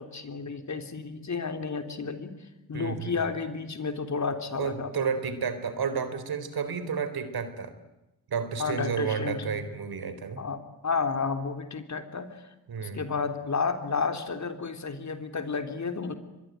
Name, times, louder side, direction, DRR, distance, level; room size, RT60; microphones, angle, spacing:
voice 1, 0.0-2.3 2.7-4.9 8.6-9.6 10.4-12.4 12.8-16.2, left 5 dB, 40° left, 8 dB, 3.5 m, -31 dB
voice 2, 2.7-3.2 4.6-7.7 8.3-10.4 12.7-13.1, right 6 dB, 55° right, 11 dB, 4.2 m, -31 dB
24.0 x 21.5 x 9.5 m, 0.98 s
supercardioid pair, 60°, 44 cm